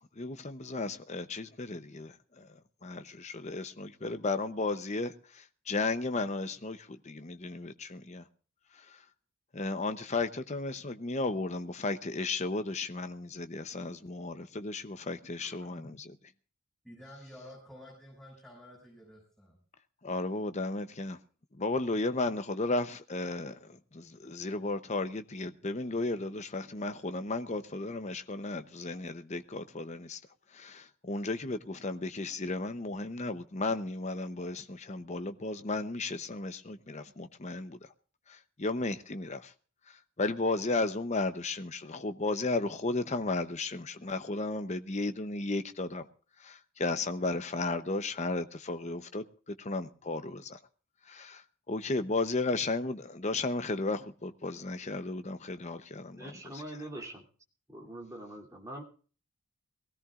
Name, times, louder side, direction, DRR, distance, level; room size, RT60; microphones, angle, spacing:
voice 1, 0.2-8.2 8.7-9.0 9.5-16.2 20.0-21.2 21.5-30.2 30.5-37.9 38.3-39.5 39.9-46.1 46.4-50.6 51.0-56.6, left 2 dB, 35° left, 0.8 m, -34 dB
voice 2, 15.4-15.9 16.8-19.6, left 1 dB, ahead, 6.3 m, -51 dB
voice 3, 56.2-57.2 57.7-58.8, right 1 dB, 15° right, 2.9 m, -43 dB
22.5 x 16.5 x 2.5 m
head